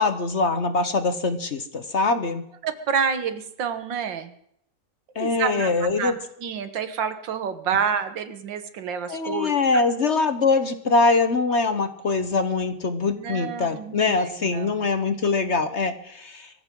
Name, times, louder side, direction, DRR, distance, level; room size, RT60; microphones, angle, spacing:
voice 1, 0.0-2.4 5.1-6.1 9.1-16.5, left 3 dB, 45° left, 9 dB, 1.2 m, -23 dB
voice 2, 2.6-4.3 5.2-6.1 6.4-9.8 13.2-14.9, right 7 dB, 85° right, 10 dB, 2.0 m, -29 dB
24.0 x 14.5 x 3.8 m, 0.71 s
omnidirectional pair, 1.9 m